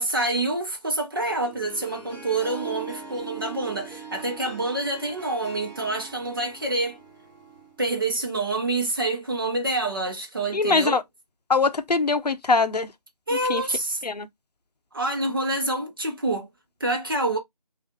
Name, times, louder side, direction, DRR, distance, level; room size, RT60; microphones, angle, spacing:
voice 1, 0.0-7.0 7.8-11.0 13.3-14.0 14.9-16.5 16.8-17.4, right 2 dB, 35° right, 0.8 m, -27 dB
Harp, 1.3-7.8, right 6 dB, 5° right, 1.3 m, -41 dB
voice 2, 10.5-11.0 11.5-12.9 13.5-13.6 14.0-14.3, left 4 dB, 75° left, 0.6 m, -22 dB
3.4 x 2.4 x 2.7 m
figure-of-eight pair, 165°, 21 cm